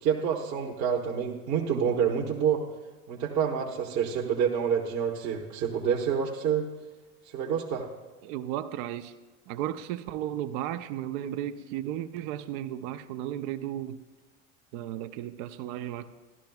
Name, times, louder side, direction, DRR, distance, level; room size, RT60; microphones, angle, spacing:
voice 1, 0.0-2.6 3.1-6.7 7.3-7.8, right 7 dB, 50° right, -2 dB, 1.1 m, -27 dB
voice 2, 1.7-2.0 8.2-9.1 9.5-14.0 14.7-16.1, right 12 dB, 65° right, 10 dB, 0.6 m, -34 dB
13.5 x 11.5 x 2.3 m, 1.3 s
supercardioid pair, 105°, 37 cm